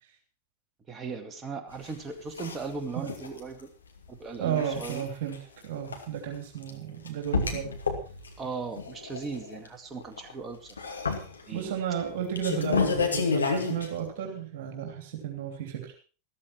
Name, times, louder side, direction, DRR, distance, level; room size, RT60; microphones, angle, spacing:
voice 1, 0.9-3.7 4.1-5.1 8.4-10.8 11.5-11.8, right 4 dB, 20° right, 6 dB, 2.2 m, -38 dB
sound 1, 1.7-1.9 2.4-2.8 3.0-3.4 4.5-5.1 5.3-5.4 5.9-6.0 6.6-6.7 7.1-8.3 8.7-9.7 10.0-10.3 10.7-11.7 12.1-13.9, left 5 dB, 75° left, 2.3 m, -30 dB
voice 2, 4.4-5.4 5.6-7.7 11.5-16.0, right 9 dB, 50° right, 3 dB, 3.0 m, -33 dB
14.0 x 14.0 x 4.4 m, 0.36 s
figure-of-eight pair, 90°, 0 cm